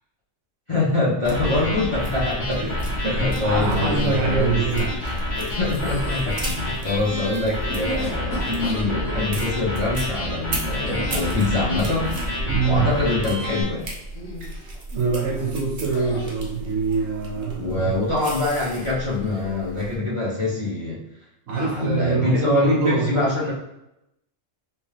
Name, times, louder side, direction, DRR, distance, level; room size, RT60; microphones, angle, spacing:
voice 1, 0.7-4.8 5.4-12.2 12.6-13.9 17.6-21.0 21.5-23.5, left 2 dB, 25° left, -9 dB, 1.0 m, -24 dB
sound 1, 1.2-13.6, left 1 dB, 50° left, 1.4 m, -29 dB
sound 2, 1.3-20.0, right 1 dB, 45° right, 0.9 m, -34 dB
voice 2, 3.0-5.1 12.4-12.9 14.4-14.6 14.9-17.9 21.5-23.5, right 4 dB, 70° right, -2 dB, 1.1 m, -25 dB
sound 3, 3.6-4.2 5.7-6.3 7.6-9.3 10.8-11.6 13.3-13.8 14.1-14.5 15.9-16.4, left 1 dB, 75° left, 1.4 m, -34 dB
3.5 x 3.1 x 3.3 m, 0.87 s
omnidirectional pair, 1.4 m